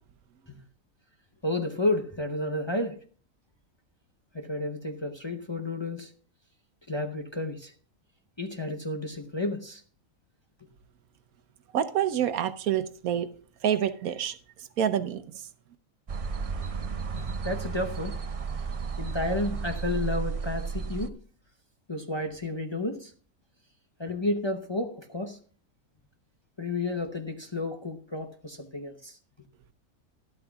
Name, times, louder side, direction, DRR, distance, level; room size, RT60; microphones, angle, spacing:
voice 1, 1.4-3.0 4.3-6.1 6.9-7.7 8.4-9.8 17.2-18.2 19.0-21.2 21.9-23.1 24.0-25.4 26.6-29.2, left 2 dB, 25° left, 0.8 m, -31 dB
voice 2, 11.7-13.3 13.6-15.5, right 9 dB, 80° right, 1.2 m, -28 dB
sound 1, 16.1-21.1, right 5 dB, 50° right, 0.4 m, -33 dB
12.5 x 12.5 x 2.4 m
omnidirectional pair, 1.5 m